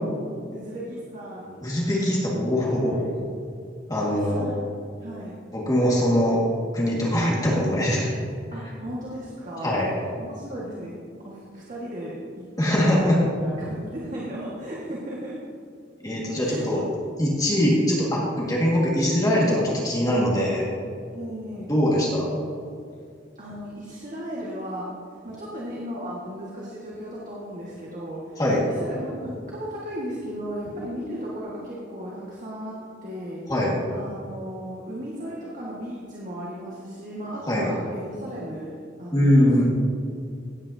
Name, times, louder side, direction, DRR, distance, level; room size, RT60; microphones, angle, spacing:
voice 1, 0.5-1.7 2.8-3.1 4.1-4.6 5.0-5.3 8.5-9.9 10.2-15.4 16.4-16.7 21.1-21.7 23.4-24.9 25.2-33.5 33.9-39.6, equal, 45° right, -6 dB, 1.7 m, -36 dB
voice 2, 1.6-3.0 3.9-4.4 5.7-6.4 6.7-8.1 9.6-9.9 12.6-13.2 16.0-16.8 17.2-20.6 21.7-22.3 28.4-28.6 33.5-33.7 37.5-37.7 39.1-39.6, equal, 20° left, -5 dB, 1.9 m, -22 dB
16.5 x 8.8 x 2.8 m, 2.3 s
head